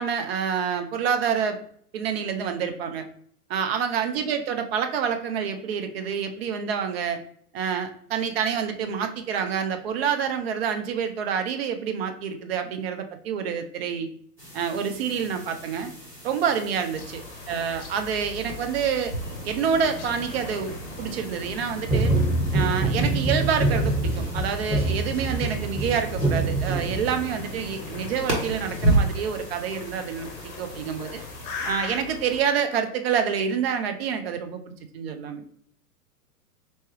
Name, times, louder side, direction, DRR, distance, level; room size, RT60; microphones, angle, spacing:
voice 1, 0.0-1.6 1.9-3.1 3.5-7.2 7.5-14.1 14.5-15.9 16.2-17.2 17.5-19.1 19.4-22.1 22.5-31.2 31.6-34.6 34.9-35.4, right 7 dB, 40° right, 6 dB, 0.6 m, -27 dB
sound 1, 14.4-31.7, right 1 dB, 90° right, 1.6 m, -33 dB
sound 2, 16.9-32.4, left 4 dB, 35° left, 0.8 m, -41 dB
sound 3, 21.8-27.4, right 2 dB, 5° right, 1.6 m, -25 dB
4.3 x 3.0 x 3.1 m, 0.63 s
figure-of-eight pair, 105°, 47 cm